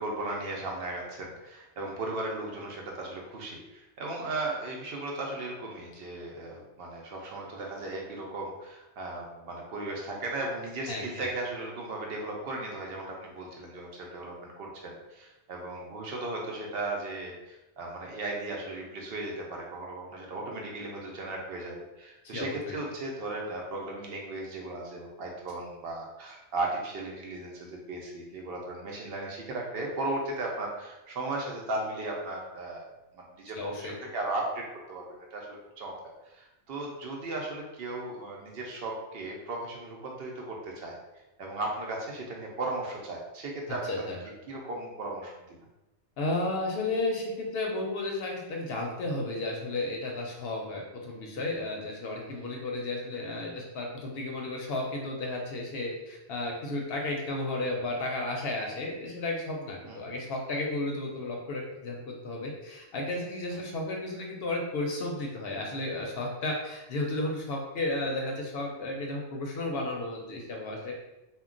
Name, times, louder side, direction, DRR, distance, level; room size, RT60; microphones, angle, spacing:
voice 1, 0.0-32.8 33.2-34.6 34.9-35.0 35.3-35.9 36.2-40.9 41.4-43.9 44.5-45.6 59.8-60.0, right 2 dB, 65° right, -1 dB, 0.7 m, -36 dB
voice 2, 10.9-11.3 22.2-22.8 33.5-33.9 43.7-44.2 46.2-70.9, left 2 dB, 65° left, 0 dB, 0.7 m, -33 dB
2.2 x 2.2 x 3.6 m, 1.0 s
omnidirectional pair, 1.2 m